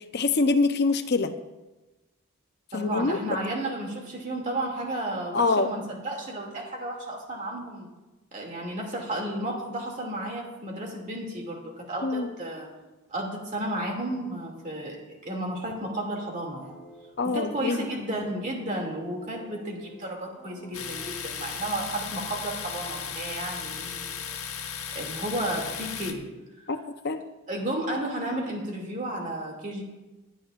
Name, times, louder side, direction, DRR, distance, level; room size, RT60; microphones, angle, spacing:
voice 1, 0.0-1.3 2.7-3.4 5.3-5.7 12.0-12.3 17.2-17.9 26.7-27.2, left 3 dB, 50° left, 7 dB, 0.7 m, -25 dB
voice 2, 2.7-7.9 8.3-12.7 13.1-16.8 17.2-24.0 24.9-26.2 26.6-26.7 27.5-29.8, right 1 dB, 35° right, 0 dB, 2.4 m, -33 dB
sound 1, 16.6-21.2 21.5-21.9 22.6-24.4, left 1 dB, 5° right, 2.9 m, -51 dB
Domestic sounds home sounds, 20.7-26.1, left 7 dB, 80° left, 1.1 m, -36 dB
21.5 x 10.0 x 2.5 m, 1.1 s
head